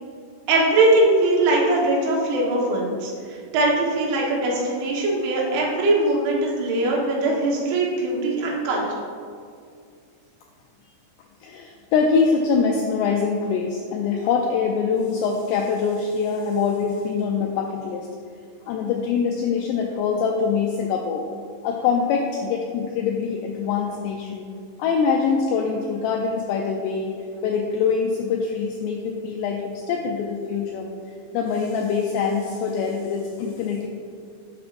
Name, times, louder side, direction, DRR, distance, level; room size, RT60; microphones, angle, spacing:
voice 1, 0.5-9.1, right 2 dB, 75° right, -3 dB, 3.7 m, -21 dB
voice 2, 11.4-18.1 18.7-21.2 21.6-24.4 24.8-27.2 27.4-30.9 31.3-33.9, left 5 dB, 85° left, 1 dB, 2.4 m, -24 dB
12.0 x 7.4 x 2.6 m, 2.2 s
omnidirectional pair, 5.4 m